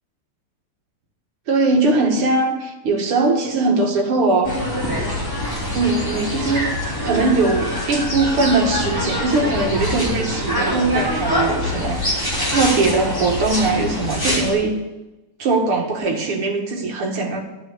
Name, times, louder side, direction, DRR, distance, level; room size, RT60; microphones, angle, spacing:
voice 1, 1.5-4.6 5.7-6.7 7.0-14.8 15.4-17.4, right 3 dB, 85° right, 2 dB, 2.7 m, -20 dB
sound 1, 4.4-14.5, left 1 dB, 10° left, 3.4 m, -24 dB
12.0 x 6.2 x 7.9 m, 1.1 s
omnidirectional pair, 2.4 m